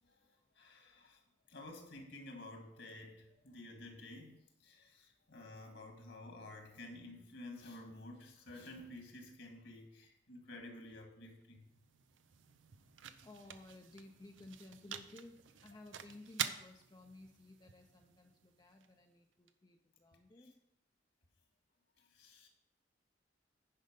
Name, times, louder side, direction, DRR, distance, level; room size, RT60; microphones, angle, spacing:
voice 1, 0.0-1.2 1.5-11.7 20.4-20.5 22.0-22.5, left 2 dB, 70° left, 3 dB, 1.9 m, -52 dB
sound 1, 11.4-19.5, right 9 dB, 85° right, 0.6 m, -48 dB
voice 2, 13.2-20.6, left 2 dB, 20° left, 2 dB, 0.5 m, -56 dB
10.0 x 5.4 x 5.2 m, 0.82 s
head